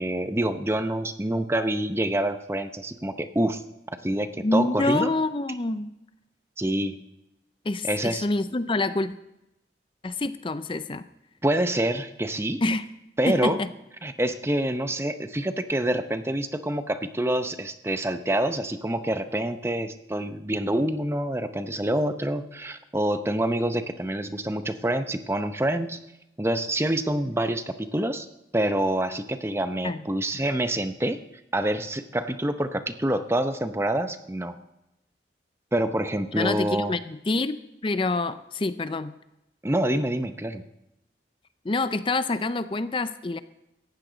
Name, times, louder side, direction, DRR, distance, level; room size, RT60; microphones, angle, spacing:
voice 1, 0.0-3.6 4.0-5.1 6.6-7.0 7.8-8.3 11.4-12.6 13.2-13.6 14.0-26.0 26.4-28.3 28.5-31.2 31.5-34.6 35.7-36.9 39.6-40.6, right 1 dB, 15° right, 10 dB, 0.7 m, -26 dB
voice 2, 4.4-5.9 7.6-9.2 10.0-11.1 12.6-12.9 13.3-13.7 29.8-30.0 36.4-39.2 41.6-43.4, left 2 dB, 25° left, 13 dB, 0.5 m, -27 dB
18.0 x 15.0 x 3.9 m, 0.90 s
head